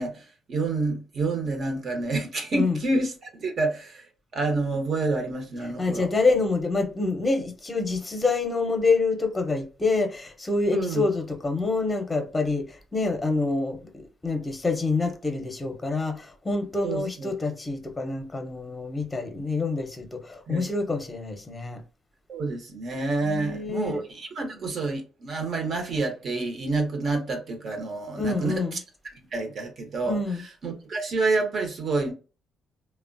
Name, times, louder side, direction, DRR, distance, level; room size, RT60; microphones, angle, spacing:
voice 1, 0.0-4.0 4.3-6.1 10.7-11.0 16.8-17.3 20.5-20.7 22.3-28.5 29.3-30.2 30.6-32.1, right 3 dB, 55° right, 0.8 m, -28 dB
voice 2, 5.8-21.8 23.2-24.0 28.2-28.8 30.0-30.4, left 3 dB, 15° left, 0.7 m, -27 dB
3.0 x 2.1 x 2.5 m
cardioid pair, 90°, 0 cm